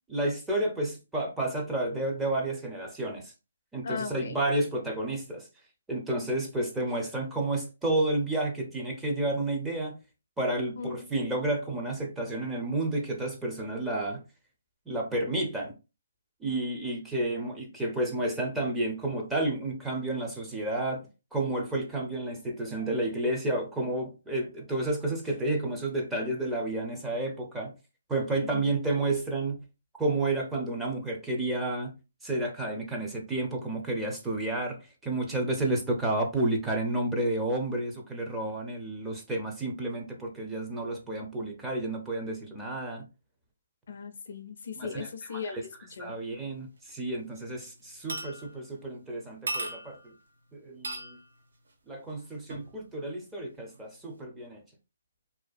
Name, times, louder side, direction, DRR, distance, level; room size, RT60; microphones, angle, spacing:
voice 1, 0.1-3.3 3.7-5.5 5.9-10.0 10.4-14.2 14.9-15.7 16.4-27.7 28.1-29.6 30.0-31.9 32.2-43.0 44.8-45.1 46.0-50.1 50.6-51.2 51.9-54.6, right 2 dB, 10° right, 0.5 m, -31 dB
voice 2, 3.8-4.4 10.8-11.1 17.3-17.4 28.4-28.7 43.9-46.2, left 5 dB, 60° left, 0.4 m, -38 dB
sound 1, 46.9-47.0 47.3-47.6 48.1-48.8 49.5-50.2 50.8-51.2 52.5-52.7 53.7-53.8, right 2 dB, 70° right, 0.8 m, -36 dB
2.5 x 2.3 x 2.3 m
hypercardioid pair, 150°, 0 cm